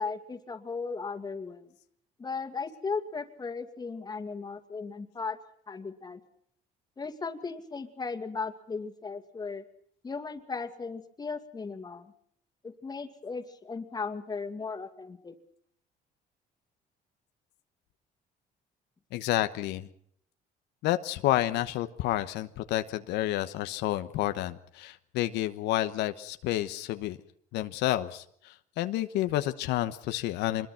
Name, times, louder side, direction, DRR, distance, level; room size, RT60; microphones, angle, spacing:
voice 1, 0.0-1.7 2.2-5.4 5.7-6.2 7.0-9.6 10.0-12.1 12.6-15.3, left 4 dB, 25° left, 7 dB, 2.3 m, -36 dB
voice 2, 19.1-19.9 20.8-27.2 27.5-30.7, left 14 dB, 85° left, 9 dB, 1.1 m, -30 dB
25.0 x 21.5 x 5.9 m, 0.65 s
cardioid pair, 110°, 17 cm